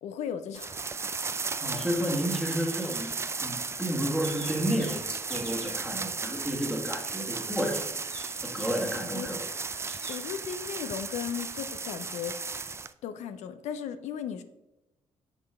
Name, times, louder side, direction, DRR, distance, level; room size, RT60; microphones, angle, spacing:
voice 1, 0.0-0.8 9.1-9.3 10.1-12.4 13.0-14.4, left 8 dB, 90° left, 0.5 m, -36 dB
sound 1, 0.6-12.9, right 4 dB, 25° right, 0.3 m, -35 dB
voice 2, 1.6-3.1 3.4-7.9 8.4-9.4, equal, ahead, 1.3 m, -31 dB
sound 2, 2.5-3.7 4.0-5.8 6.3-6.6 6.9-8.7 9.9-10.2, equal, 20° left, 2.2 m, -49 dB
6.1 x 5.3 x 3.5 m
cardioid pair, 80°, 11 cm